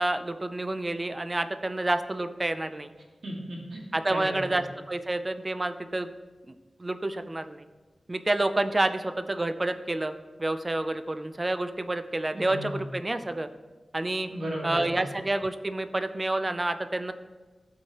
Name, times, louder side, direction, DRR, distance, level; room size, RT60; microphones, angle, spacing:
voice 1, 0.0-2.9 3.9-6.1 6.8-7.6 8.1-13.5 13.9-14.3 14.6-17.1, right 2 dB, 25° right, 9 dB, 0.4 m, -29 dB
voice 2, 3.2-4.6 12.3-12.8 14.3-15.0, equal, 70° right, -2 dB, 1.9 m, -35 dB
13.5 x 4.7 x 2.9 m, 1.3 s
wide cardioid pair, 120°, 0 cm